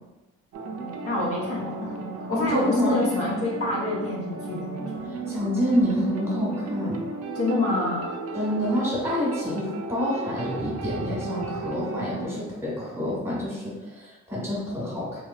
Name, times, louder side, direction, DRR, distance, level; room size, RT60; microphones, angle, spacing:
sound 1, 0.5-12.3, right 4 dB, 55° right, 0.5 m, -34 dB
voice 1, 1.0-5.0 7.3-8.1, left 2 dB, 50° left, -5 dB, 0.9 m, -27 dB
voice 2, 2.3-3.0 5.0-7.0 8.3-15.2, equal, 10° right, -7 dB, 1.4 m, -27 dB
3.1 x 3.0 x 2.3 m, 1.2 s
cardioid pair, 90°, 30 cm